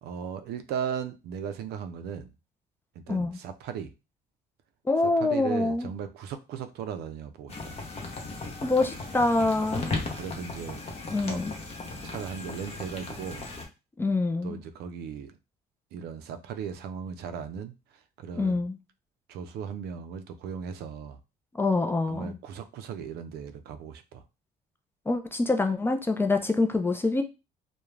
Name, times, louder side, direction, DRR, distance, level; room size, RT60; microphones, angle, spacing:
voice 1, 0.0-2.3 3.0-3.9 5.2-7.8 9.8-10.8 11.2-11.4 12.0-13.5 14.4-15.3 15.9-18.6 19.3-21.2 22.1-24.2, right 7 dB, 75° right, 0.4 m, -37 dB
voice 2, 3.1-3.4 4.9-5.9 8.6-9.9 11.1-11.5 14.0-14.6 18.4-18.8 21.5-22.4 25.1-27.2, left 3 dB, 15° left, 0.3 m, -25 dB
sound 1, 7.5-13.6, left 3 dB, 40° left, 0.7 m, -36 dB
2.3 x 2.1 x 3.1 m
cardioid pair, 110°, 17 cm